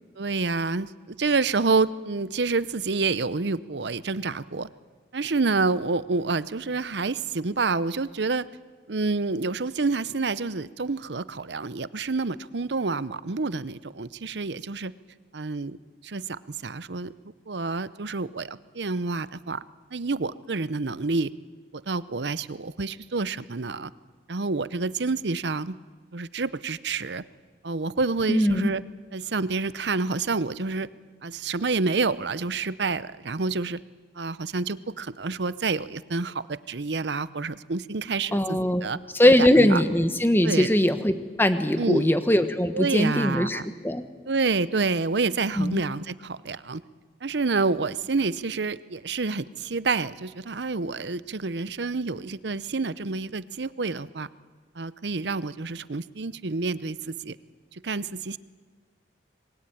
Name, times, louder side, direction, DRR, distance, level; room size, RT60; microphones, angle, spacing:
voice 1, 0.2-4.7 5.1-8.5 8.9-14.9 15.3-15.8 16.0-17.1 17.5-19.6 19.9-21.3 21.9-23.9 24.3-25.8 26.1-27.2 27.6-28.8 29.1-30.9 31.2-33.8 34.2-39.0 39.4-39.8 40.4-40.7 41.8-42.1 42.7-43.6 44.3-46.8 47.2-54.3 54.8-57.4 57.7-58.4, right 3 dB, 70° right, 16 dB, 0.8 m, -28 dB
voice 2, 28.3-28.7 38.3-38.9 39.1-44.0 45.6-45.8, left 1 dB, 10° left, 9 dB, 1.3 m, -21 dB
26.5 x 21.5 x 9.2 m, 1.4 s
head